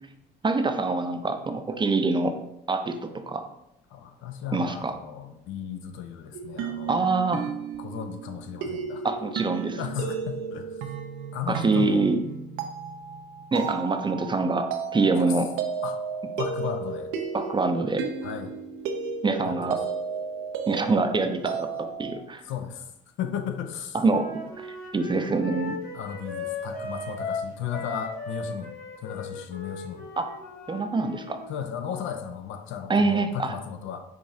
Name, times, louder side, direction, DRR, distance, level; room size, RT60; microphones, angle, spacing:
voice 1, 0.4-2.3 2.7-3.4 4.5-5.0 6.9-7.4 9.0-9.8 11.5-12.2 13.5-15.6 17.3-18.0 19.2-19.8 20.7-22.4 23.9-24.2 24.6-24.7 24.9-25.8 30.2-30.3 30.7-31.4 32.9-33.5, right 3 dB, 25° right, 7 dB, 0.4 m, -25 dB
voice 2, 3.9-7.1 7.8-9.1 9.8-10.7 11.3-12.1 15.3-15.4 15.8-16.0 16.4-17.1 18.2-18.5 19.4-19.7 22.4-22.8 23.2-24.0 25.9-28.7 29.0-30.1 31.5-34.0, left 8 dB, 70° left, 7 dB, 0.5 m, -35 dB
sound 1, 6.3-22.2, right 6 dB, 75° right, 0.5 m, -34 dB
Wind instrument woodwind instrument, 24.0-31.5, left 3 dB, 45° left, 1.1 m, -37 dB
4.8 x 2.5 x 2.7 m, 0.85 s
supercardioid pair, 65°, 21 cm